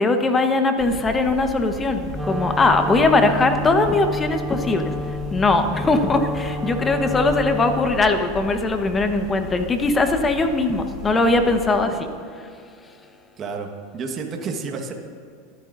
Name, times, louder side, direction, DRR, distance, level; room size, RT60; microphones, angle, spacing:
voice 1, 0.0-4.9 5.3-12.1, left 2 dB, 20° left, 7 dB, 1.3 m, -20 dB
sound 1, 0.8-11.8, left 3 dB, 50° left, 2.2 m, -36 dB
Wind instrument woodwind instrument, 2.1-8.1, left 2 dB, 10° right, 0.8 m, -30 dB
voice 2, 13.4-14.9, right 4 dB, 35° right, 3 dB, 1.5 m, -30 dB
25.5 x 9.6 x 2.7 m, 2.2 s
hypercardioid pair, 90°, 0 cm